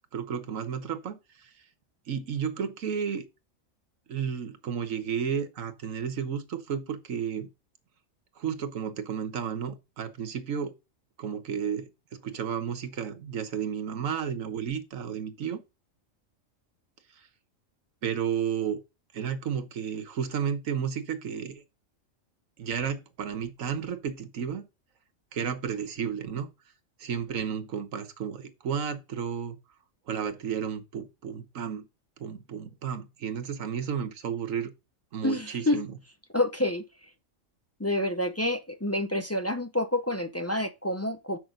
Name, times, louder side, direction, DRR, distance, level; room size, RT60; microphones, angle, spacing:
voice 1, 0.1-1.5 2.1-3.2 4.1-7.5 8.4-10.7 11.2-15.6 18.0-18.8 19.1-21.6 22.6-24.7 25.3-26.5 27.0-29.6 30.1-31.9 32.2-34.7 35.1-35.9, right 7 dB, 80° right, 1.5 m, -32 dB
voice 2, 35.2-35.8 36.3-36.8 37.8-41.4, left 1 dB, 15° left, 0.6 m, -28 dB
7.2 x 6.1 x 3.8 m
omnidirectional pair, 1.4 m